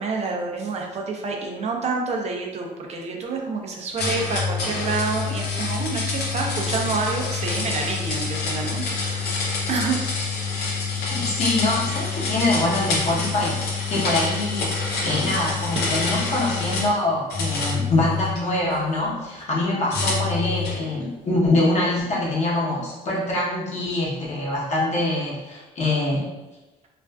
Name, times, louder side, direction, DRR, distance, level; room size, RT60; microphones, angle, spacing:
voice 1, 0.0-10.0, right 4 dB, 40° right, 1 dB, 0.5 m, -28 dB
sound 1, 4.0-16.9 17.3-18.8 19.9-20.8, left 4 dB, 70° left, 0.6 m, -27 dB
voice 2, 11.1-13.6 13.9-26.3, left 2 dB, 45° left, -5 dB, 0.9 m, -24 dB
2.4 x 2.3 x 2.2 m, 1.1 s
cardioid pair, 110°, 17 cm